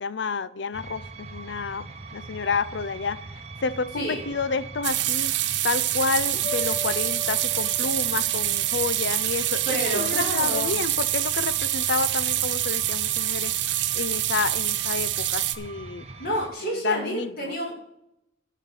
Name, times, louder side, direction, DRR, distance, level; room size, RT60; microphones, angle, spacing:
voice 1, 0.0-3.2 3.6-5.3 5.6-13.5 13.9-16.0 16.6-17.5, left 5 dB, 75° left, 0.6 m, -30 dB
sound 1, 0.7-16.5, right 3 dB, 35° right, 0.8 m, -41 dB
sound 2, 4.8-15.6, right 14 dB, 75° right, 0.6 m, -26 dB
sound 3, 6.4-9.5, left 2 dB, 5° left, 3.5 m, -39 dB
voice 2, 9.7-10.7 16.2-17.7, equal, 50° left, 4.5 m, -29 dB
11.0 x 4.7 x 7.9 m
head